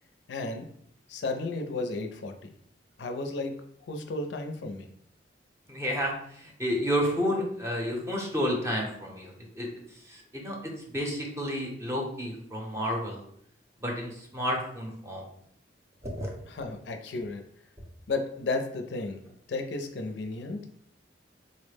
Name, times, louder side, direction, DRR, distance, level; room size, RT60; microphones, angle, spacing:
voice 1, 0.3-0.7 1.1-2.5 3.0-3.5 3.9-4.9 16.5-17.4 18.1-20.7, left 3 dB, 70° left, 6 dB, 0.4 m, -33 dB
voice 2, 5.7-9.7 10.1-10.6 10.9-13.2 13.8-15.2 16.0-16.3, equal, 15° right, 0 dB, 0.7 m, -31 dB
3.9 x 2.0 x 3.3 m, 0.67 s
head